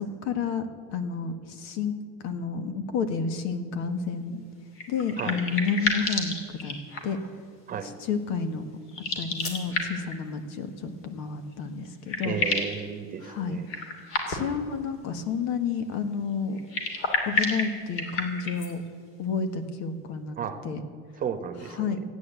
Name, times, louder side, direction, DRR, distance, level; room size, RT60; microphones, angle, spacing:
voice 1, 0.2-1.9 2.2-4.4 4.9-6.8 7.0-7.2 8.1-8.6 9.2-12.4 13.2-13.6 14.3-16.6 17.2-18.8 19.2-20.4 20.6-20.8 21.8-22.0, left 5 dB, 65° left, 9 dB, 1.6 m, -30 dB
sound 1, 4.7-7.3 8.9-10.2 11.5-11.6 11.8-12.8 13.7-14.6 16.6-18.7, left 3 dB, 45° left, 2.8 m, -30 dB
voice 2, 12.2-13.7 20.4-20.6 21.2-22.0, right 7 dB, 30° right, 9 dB, 1.1 m, -33 dB
15.5 x 9.6 x 8.2 m, 2.1 s
cardioid pair, 155°, 29 cm